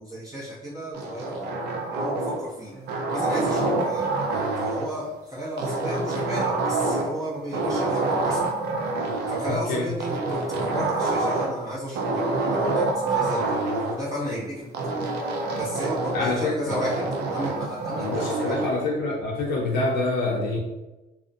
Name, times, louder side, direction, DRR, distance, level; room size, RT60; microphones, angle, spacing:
voice 1, 0.0-8.5 9.3-14.8 15.6-17.0 17.3-18.6, equal, 20° right, -7 dB, 0.6 m, -33 dB
sound 1, 0.9-2.5 2.9-4.9 5.6-7.2 7.5-9.5 10.0-11.6 11.9-14.0 14.7-16.3 16.7-18.7, right 2 dB, 75° right, 0.5 m, -26 dB
voice 2, 9.5-9.9 16.1-16.8 18.0-20.6, left 2 dB, 75° left, -2 dB, 0.5 m, -26 dB
2.4 x 2.0 x 2.5 m, 1.0 s
cardioid pair, 110°, 17 cm